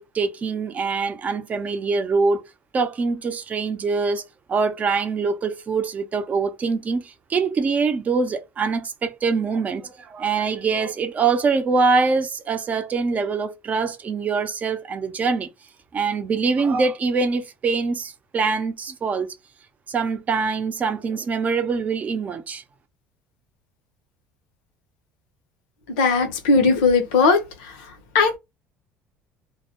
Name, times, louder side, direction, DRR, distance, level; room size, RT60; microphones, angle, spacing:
voice 1, 0.0-2.4 2.7-4.2 4.5-15.5 15.9-19.3 19.9-22.6, right 4 dB, 35° right, 0.6 m, -24 dB
voice 2, 26.0-27.7 28.1-28.4, left 4 dB, 90° left, 0.7 m, -18 dB
2.2 x 2.1 x 2.8 m
supercardioid pair, 100°, 5 cm